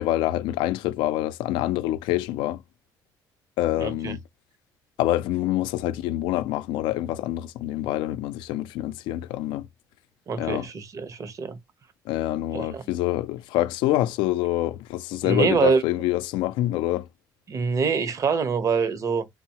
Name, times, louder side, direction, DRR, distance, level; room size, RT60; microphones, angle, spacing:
voice 1, 0.0-2.6 3.6-4.2 5.0-9.7 10.4-10.7 12.1-17.1, left 15 dB, 90° left, 0.4 m, -26 dB
voice 2, 3.8-4.2 10.3-11.6 12.5-12.8 15.2-15.8 17.5-19.3, right 5 dB, 45° right, 0.7 m, -25 dB
3.0 x 2.0 x 2.8 m
cardioid pair, 90°, 8 cm